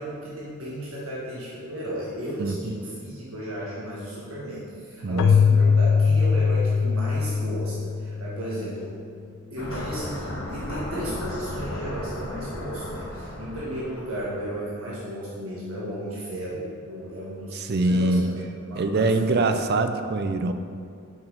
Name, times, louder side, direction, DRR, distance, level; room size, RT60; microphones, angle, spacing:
voice 1, 0.0-9.0 9.5-19.6, equal, 80° right, -7 dB, 1.6 m, -34 dB
voice 2, 2.4-2.7 5.0-5.4 17.5-18.3 18.8-20.5, right 2 dB, 50° right, 8 dB, 0.5 m, -24 dB
Keyboard (musical), 5.2-8.7, left 5 dB, 85° left, 0.3 m, -21 dB
sound 1, 9.6-14.5, left 1 dB, 65° left, 1.3 m, -35 dB
7.1 x 5.8 x 5.0 m, 2.3 s
head